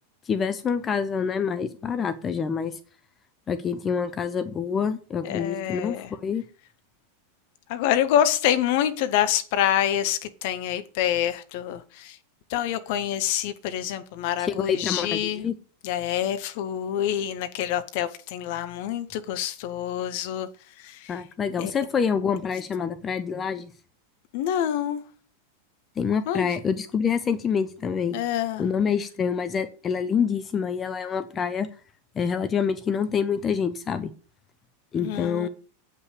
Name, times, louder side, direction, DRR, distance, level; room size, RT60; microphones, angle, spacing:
voice 1, 0.3-2.8 3.5-6.4 14.4-15.5 21.1-23.7 26.0-28.2 28.6-31.7 32.1-34.1 34.9-35.5, left 6 dB, 20° left, 0.7 m, -26 dB
voice 2, 5.2-6.1 7.7-12.2 12.5-15.5 15.8-20.5 20.8-21.1 21.6-21.7 24.3-25.0 26.3-26.5 28.1-28.7 35.0-35.5, left 11 dB, 50° left, 0.9 m, -26 dB
8.1 x 5.6 x 6.6 m
figure-of-eight pair, 90°, 0 cm